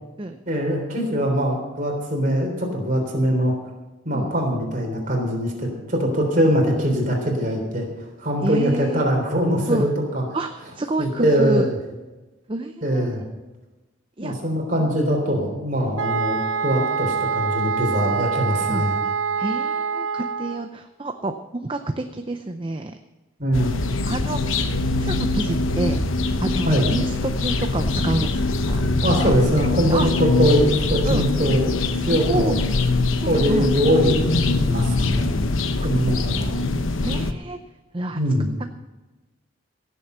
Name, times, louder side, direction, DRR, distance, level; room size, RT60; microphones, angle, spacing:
voice 1, 0.5-3.5 4.1-7.9 8.2-9.9 10.1-10.2 11.0-11.7 12.8-13.2 14.2-19.0 23.4-23.7 26.6-26.9 29.0-32.6 33.3-35.3 35.8-36.6 38.1-38.5, equal, 40° right, 1 dB, 3.5 m, -22 dB
voice 2, 8.4-9.1 9.7-9.9 10.3-11.7 12.5-13.2 14.2-14.4 14.8-14.9 18.7-18.9 19.4-23.0 24.1-24.5 25.0-26.0 26.4-29.3 29.9-30.1 31.0-31.3 32.1-32.5 33.2-33.7 35.8-35.9 37.0-37.6 37.9-38.2, right 2 dB, 25° right, 7 dB, 0.5 m, -28 dB
sound 1, 16.0-20.7, right 6 dB, 80° right, 0.8 m, -25 dB
sound 2, 23.5-37.3, left 2 dB, 75° left, 0.9 m, -23 dB
17.0 x 7.5 x 6.8 m, 1.1 s
head